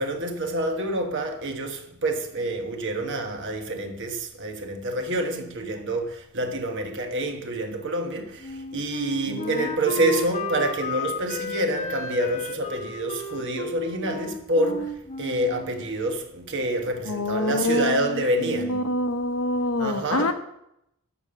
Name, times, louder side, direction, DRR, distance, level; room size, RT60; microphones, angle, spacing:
voice 1, 0.0-18.8 19.8-20.3, right 1 dB, 55° right, 1.3 m, -27 dB
Wind instrument woodwind instrument, 8.4-15.9, left 2 dB, 35° left, 1.0 m, -33 dB
voice 2, 9.3-9.7 17.1-20.3, left 2 dB, 75° left, 1.0 m, -26 dB
12.0 x 5.2 x 7.0 m
head